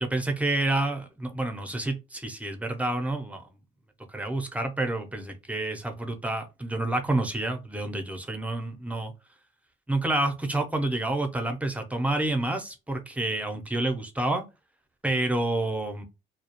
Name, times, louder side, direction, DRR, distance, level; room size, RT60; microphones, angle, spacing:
voice 1, 0.0-3.5 4.1-9.1 9.9-14.4 15.0-16.0, right 2 dB, 5° right, 0.6 m, -28 dB
2.3 x 2.1 x 2.8 m
cardioid pair, 90°, 20 cm